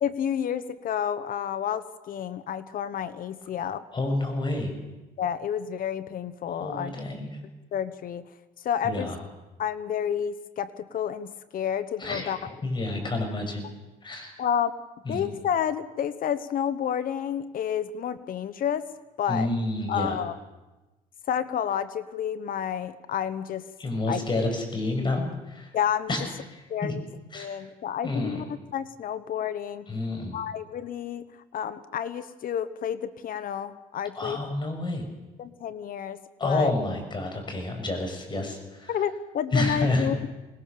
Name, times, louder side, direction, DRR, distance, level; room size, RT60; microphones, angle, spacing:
voice 1, 0.0-3.8 5.2-6.9 7.7-8.2 8.6-9.1 9.6-12.5 14.4-14.7 15.1-18.8 19.2-19.5 19.9-20.4 21.3-23.6 24.1-24.2 25.7-26.1 26.7-27.0 27.3-29.9 30.3-34.4 35.4-36.7 38.9-40.2, left 9 dB, 55° left, 14 dB, 1.2 m, -30 dB
voice 2, 3.9-4.7 6.6-7.4 8.8-9.1 12.0-12.4 12.6-13.6 14.0-14.4 15.0-15.2 19.3-20.2 23.8-25.7 26.1-26.2 26.5-26.9 27.3-27.6 28.0-28.4 29.9-30.4 34.2-35.1 36.4-38.9 39.5-40.1, left 2 dB, 25° left, 4 dB, 6.7 m, -29 dB
25.5 x 20.0 x 6.8 m, 1.1 s
cardioid pair, 110°, 17 cm